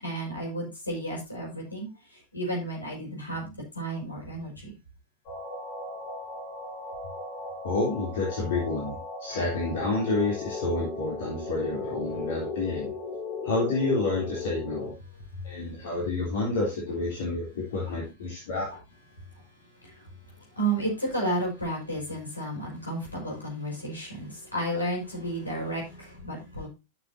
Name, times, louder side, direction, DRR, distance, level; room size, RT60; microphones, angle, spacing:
voice 1, 0.0-1.9 2.3-3.5 3.7-4.7 19.8-19.9 20.6-26.7, right 1 dB, 80° left, -2 dB, 5.8 m, -32 dB
sound 1, 5.3-14.9, left 3 dB, 40° left, 5.5 m, -37 dB
voice 2, 7.6-12.9 13.4-14.9 15.4-18.7, left 2 dB, 60° left, -3 dB, 3.4 m, -29 dB
13.5 x 7.0 x 2.8 m, 0.26 s
figure-of-eight pair, 90°, 0 cm